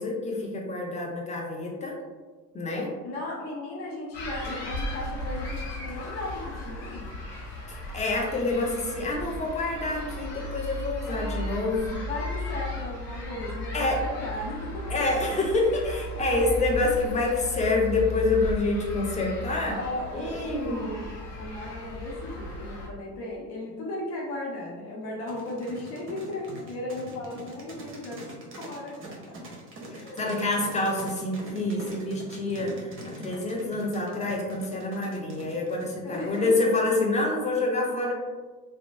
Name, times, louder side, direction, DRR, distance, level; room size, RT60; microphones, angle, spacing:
voice 1, 0.0-2.0 2.5-2.9 7.7-12.0 13.7-14.1 14.9-19.8 20.1-20.9 29.9-38.1, left 2 dB, 15° left, -1 dB, 0.5 m, -27 dB
voice 2, 3.0-7.0 11.1-11.5 12.0-14.9 16.1-16.4 19.8-21.1 21.4-28.3 28.6-29.0 29.3-29.4 29.9-30.3 36.0-36.9, left 1 dB, 55° left, -3 dB, 0.9 m, -36 dB
sound 1, 4.1-22.9, left 2 dB, 85° left, 1.0 m, -36 dB
sound 2, 25.3-36.7, right 1 dB, 25° right, 0.7 m, -43 dB
2.9 x 2.1 x 2.6 m, 1.3 s
figure-of-eight pair, 60°, 47 cm